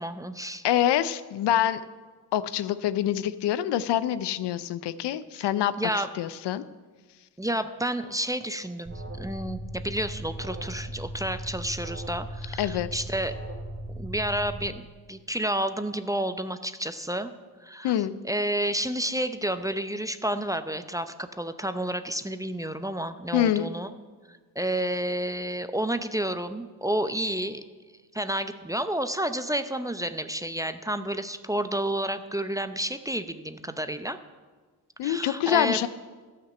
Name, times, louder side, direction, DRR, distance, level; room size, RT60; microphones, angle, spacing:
voice 1, 0.0-0.6 5.4-5.5 5.8-6.1 7.4-13.3 13.9-17.3 17.6-18.0 18.2-23.9 24.3-27.6 28.1-34.2 35.0-35.8, right 1 dB, 10° right, 10 dB, 0.7 m, -30 dB
voice 2, 0.6-1.8 2.3-5.7 6.2-6.6 12.6-12.9 17.8-18.1 23.3-23.7 35.0-35.9, left 11 dB, 65° left, 14 dB, 0.6 m, -25 dB
Alarm, 8.8-14.7, right 1 dB, 25° right, 2.6 m, -37 dB
12.5 x 5.9 x 7.7 m, 1.4 s
supercardioid pair, 50°, 45 cm